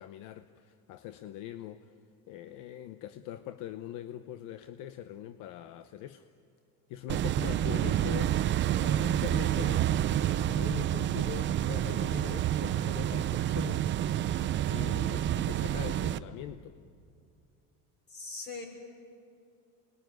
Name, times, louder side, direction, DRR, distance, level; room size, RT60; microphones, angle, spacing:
voice 1, 0.0-1.9 2.3-6.3 6.9-8.4 8.8-9.9 10.3-13.9 14.7-16.8, left 12 dB, 60° left, 11 dB, 0.9 m, -42 dB
sound 1, 7.1-16.2, right 11 dB, 35° right, 0.6 m, -29 dB
voice 2, 18.1-18.7, left 3 dB, 30° left, 3 dB, 5.5 m, -40 dB
27.5 x 21.0 x 9.4 m, 2.4 s
cardioid pair, 160°, 35 cm